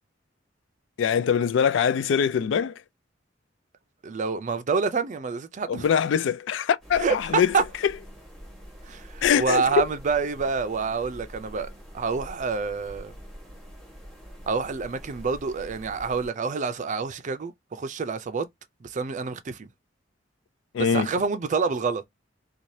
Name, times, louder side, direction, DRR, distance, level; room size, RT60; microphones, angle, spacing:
voice 1, 1.0-2.8 5.7-7.5 7.8-7.9 9.2-9.9 20.7-21.1, left 7 dB, 75° left, 0.3 m, -23 dB
voice 2, 4.0-5.9 7.0-7.6 8.9-13.1 14.5-18.5 18.8-19.7 20.8-22.0, right 5 dB, 40° right, 0.4 m, -27 dB
sound 1, 6.8-16.3, equal, ahead, 1.1 m, -45 dB
2.7 x 2.3 x 3.1 m
head